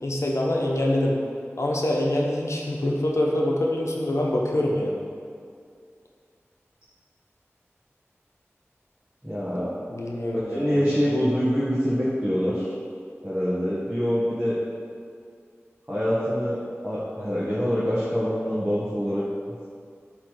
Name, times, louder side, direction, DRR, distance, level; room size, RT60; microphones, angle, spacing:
voice 1, 0.0-1.2 1.6-5.0 9.9-10.9, left 1 dB, 75° left, -2 dB, 1.1 m, -25 dB
voice 2, 9.2-9.7 10.5-12.7 13.2-14.6 15.9-16.6 16.8-19.2, equal, 20° right, -9 dB, 1.7 m, -25 dB
8.1 x 3.4 x 6.6 m, 2.2 s
wide cardioid pair, 40°, 5 cm